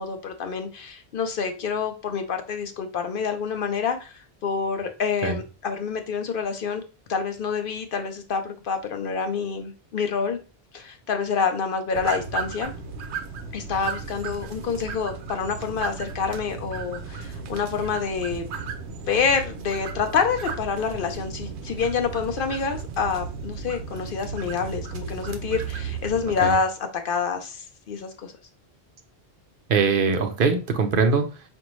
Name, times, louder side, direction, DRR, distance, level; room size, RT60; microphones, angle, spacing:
voice 1, 0.0-6.8 7.1-10.4 10.7-12.7 13.5-18.5 19.1-26.7 27.0-28.3, left 5 dB, 60° left, 6 dB, 0.7 m, -27 dB
sound 1, 11.9-26.5, right 5 dB, 90° right, 0.9 m, -35 dB
voice 2, 29.7-31.5, right 5 dB, 60° right, 7 dB, 0.7 m, -22 dB
5.0 x 2.6 x 3.0 m, 0.33 s
omnidirectional pair, 1.1 m